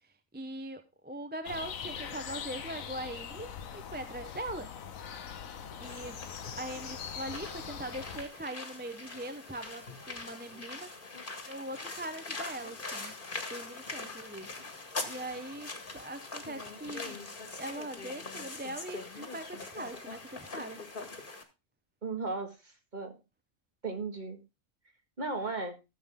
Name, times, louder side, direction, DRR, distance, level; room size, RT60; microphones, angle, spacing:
voice 1, 0.3-4.7 5.8-6.2 6.5-10.9 11.5-13.1 13.5-14.5 15.0-17.2 17.5-20.8, right 1 dB, 10° right, 9 dB, 0.6 m, -41 dB
sound 1, 1.4-8.3, left 7 dB, 85° left, 1.4 m, -42 dB
sound 2, 5.8-21.4, left 3 dB, 40° left, 1.9 m, -42 dB
voice 2, 22.0-23.1 23.8-24.4 25.2-25.8, right 3 dB, 35° right, 5 dB, 1.9 m, -36 dB
14.0 x 7.5 x 3.6 m, 0.26 s
omnidirectional pair, 1.4 m